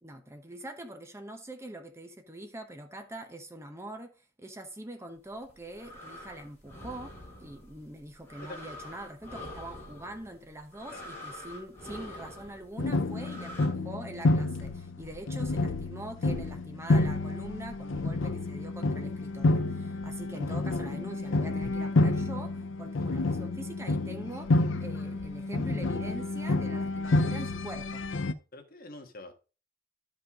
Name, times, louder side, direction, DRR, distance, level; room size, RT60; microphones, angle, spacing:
voice 1, 0.0-28.0, right 1 dB, 15° right, 0.9 m, -44 dB
sound 1, 5.3-13.7, left 1 dB, 15° left, 3.4 m, -46 dB
voice 2, 10.9-11.3 13.2-13.4 20.5-20.6 28.5-29.3, left 2 dB, 50° left, 1.4 m, -46 dB
sound 2, 12.8-28.3, left 2 dB, 75° left, 0.6 m, -29 dB
11.0 x 5.4 x 3.6 m
head